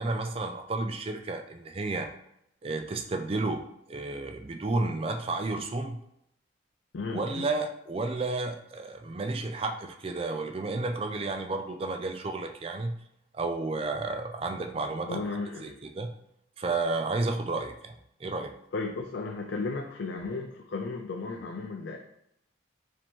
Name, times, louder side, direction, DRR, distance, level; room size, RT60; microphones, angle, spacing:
voice 1, 0.0-2.1 2.6-3.6 3.9-6.0 7.1-13.0 13.3-15.2 15.6-16.1 16.6-18.0 18.2-18.5, right 3 dB, 30° right, 5 dB, 0.4 m, -32 dB
voice 2, 6.9-7.5 15.1-15.8 18.7-22.0, left 3 dB, 65° left, 2 dB, 0.4 m, -34 dB
5.1 x 2.9 x 3.5 m, 0.77 s
head